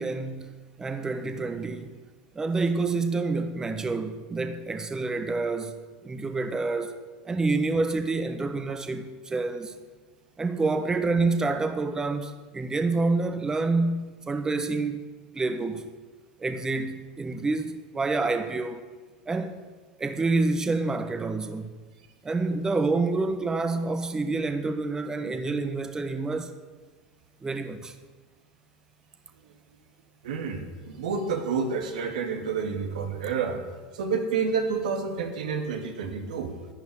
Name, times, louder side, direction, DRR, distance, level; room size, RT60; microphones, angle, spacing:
voice 1, 0.0-2.0 2.3-7.0 7.2-9.7 10.4-15.0 15.3-15.9 16.4-18.9 19.3-19.6 20.0-21.7 22.2-26.6 27.4-28.0, right 3 dB, 15° right, 1.2 m, -28 dB
voice 2, 30.2-33.6 33.9-36.5, right 5 dB, 90° right, 2.5 m, -29 dB
12.0 x 10.5 x 9.9 m
supercardioid pair, 120°, 4 cm